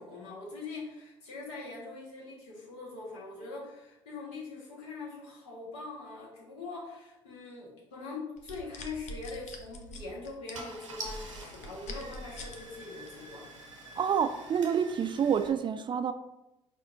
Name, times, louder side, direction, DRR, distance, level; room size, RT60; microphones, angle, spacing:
voice 1, 0.0-13.5, left 3 dB, 70° left, -4 dB, 1.4 m, -42 dB
sound 1, 8.4-12.6 13.1-13.3, left 2 dB, 50° left, 0.8 m, -43 dB
Car / Engine starting, 9.4-9.6 10.2-10.3 10.5-15.5, right 2 dB, 85° right, 0.7 m, -46 dB
voice 2, 14.0-16.1, right 7 dB, 30° right, 9 dB, 0.4 m, -28 dB
4.3 x 4.3 x 2.5 m, 0.91 s
figure-of-eight pair, 50°, 16 cm